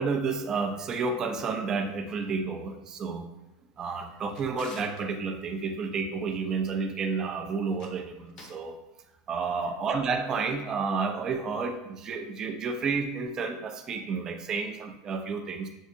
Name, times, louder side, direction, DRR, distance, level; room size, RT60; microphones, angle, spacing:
voice 1, 0.0-3.3 3.8-8.8 9.3-15.7, right 4 dB, 30° right, 4 dB, 0.5 m, -31 dB
Drawer open or close, 3.9-5.1 7.6-8.7, left 4 dB, 40° left, 0.6 m, -50 dB
7.1 x 2.4 x 2.6 m, 0.94 s
supercardioid pair, 140°, 2 cm